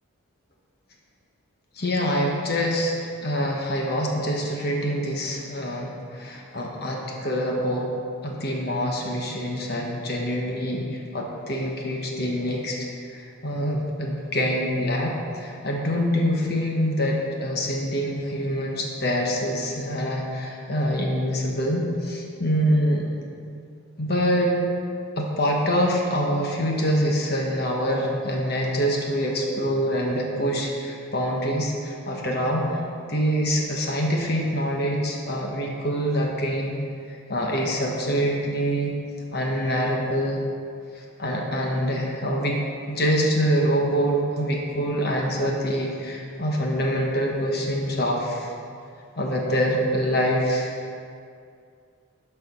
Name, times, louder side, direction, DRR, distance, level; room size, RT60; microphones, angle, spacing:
voice 1, 1.8-2.9 3.2-7.9 8.2-10.8 11.1-23.1 24.0-24.6 25.2-32.7 33.1-36.7 37.3-38.9 39.3-40.4 41.2-42.6 42.9-48.5 49.2-50.7, equal, 50° left, -1 dB, 1.1 m, -25 dB
13.0 x 4.5 x 5.5 m, 2.4 s
head